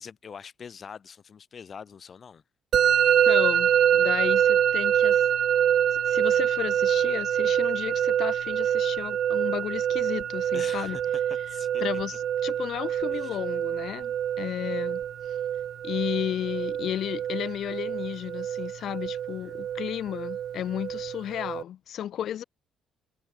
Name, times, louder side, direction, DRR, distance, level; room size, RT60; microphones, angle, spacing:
voice 1, 0.0-2.4 10.5-11.0 11.5-11.8 13.1-13.4 19.4-19.6, left 6 dB, 30° left, 1.7 m, -44 dB
Musical instrument, 2.7-21.6, right 10 dB, 45° right, 0.8 m, -25 dB
voice 2, 3.2-5.2 5.9-11.0 11.8-15.0 15.3-15.4 15.8-22.4, left 11 dB, 50° left, 2.1 m, -33 dB
cardioid pair, 170°, 0 cm